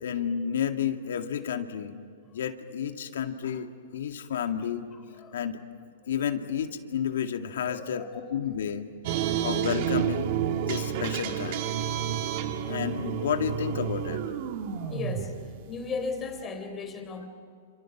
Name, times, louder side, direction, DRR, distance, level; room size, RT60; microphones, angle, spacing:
voice 1, 0.0-1.9 2.3-4.8 5.3-5.6 6.1-8.9 9.4-11.7 12.7-14.2, left 8 dB, 80° left, 6 dB, 2.2 m, -31 dB
voice 2, 7.7-8.1 9.2-9.6 12.0-12.4 14.9-15.4 15.7-17.3, left 4 dB, 20° left, 7 dB, 3.7 m, -37 dB
sound 1, 9.0-16.4, right 9 dB, 50° right, 1.9 m, -30 dB
29.0 x 27.5 x 6.2 m, 2.3 s
hypercardioid pair, 145°, 0 cm